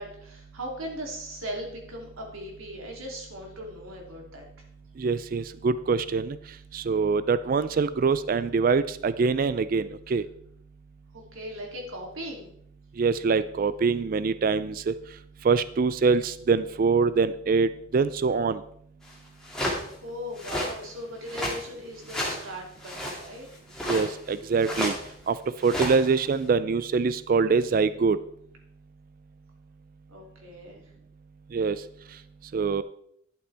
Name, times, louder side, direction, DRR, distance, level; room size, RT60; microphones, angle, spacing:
voice 1, 0.0-4.4 11.1-12.5 20.0-23.5 30.1-30.8, equal, 85° right, 0 dB, 2.8 m, -38 dB
voice 2, 5.0-6.4 6.7-10.2 13.0-14.9 15.4-18.6 23.9-24.9 25.3-25.4 25.6-28.2 31.5-31.8 32.5-32.8, right 4 dB, 45° right, 15 dB, 0.3 m, -24 dB
sound 1, 19.1-19.2 19.4-19.8 20.4-20.7 21.3-21.6 22.1-22.5 22.8-23.3 23.7-24.3 24.6-25.1 25.6-26.3, left 1 dB, 5° left, 2.2 m, -31 dB
11.5 x 8.2 x 3.4 m, 0.70 s
head